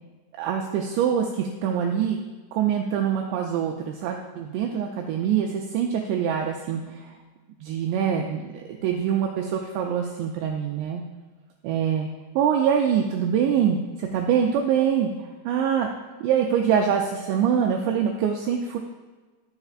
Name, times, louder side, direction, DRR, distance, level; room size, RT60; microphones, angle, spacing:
voice 1, 0.4-2.2 2.5-7.2 7.6-11.0 11.6-12.1 12.4-15.9 16.2-18.8, right 8 dB, 90° right, 1 dB, 2.5 m, -24 dB
11.5 x 6.6 x 2.4 m, 1.3 s
omnidirectional pair, 5.7 m